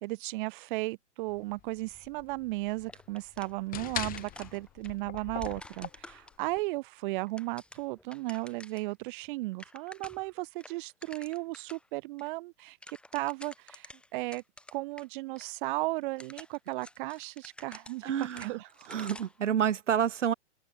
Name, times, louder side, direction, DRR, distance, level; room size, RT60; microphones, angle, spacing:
voice 1, 0.0-14.4 14.7-18.9, right 22 dB, 45° right, 1.6 m, -35 dB
sound 1, 1.3-6.6, left 13 dB, 25° left, 1.8 m, -41 dB
sound 2, 2.9-3.9 4.2-6.6 7.1-8.9 9.2-9.3 9.5-10.3 10.6-11.9 12.2-12.3 12.6-15.1 15.4-15.5 16.0-19.4, left 1 dB, 5° left, 2.6 m, -51 dB
voice 2, 18.0-18.6 18.9-20.3, right 9 dB, 80° right, 1.6 m, -29 dB
hypercardioid pair, 130°, 36 cm